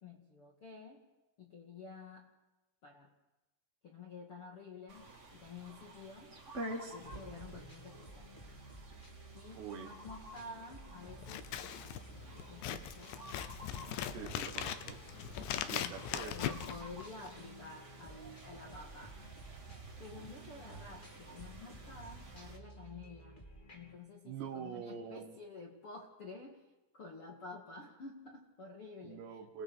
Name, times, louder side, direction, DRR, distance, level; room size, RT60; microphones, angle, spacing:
voice 1, 0.0-1.1 1.4-2.3 2.8-3.1 3.8-6.4 6.9-8.3 9.3-13.2 15.1-19.2 20.0-23.4 23.7-29.3, left 3 dB, 50° left, 0 dB, 1.7 m, -51 dB
sound 1, 4.9-22.6, right 1 dB, 30° right, 1.3 m, -50 dB
sound 2, 7.0-24.0, right 1 dB, 15° left, 2.2 m, -54 dB
voice 2, 9.6-9.9 14.1-15.0 15.7-16.4 20.2-20.5 24.2-25.3 29.0-29.6, right 7 dB, 70° right, 7 dB, 3.1 m, -45 dB
Scissors, 11.2-17.4, left 11 dB, 75° left, 2.8 m, -40 dB
30.0 x 18.5 x 6.3 m, 1.1 s
omnidirectional pair, 5.9 m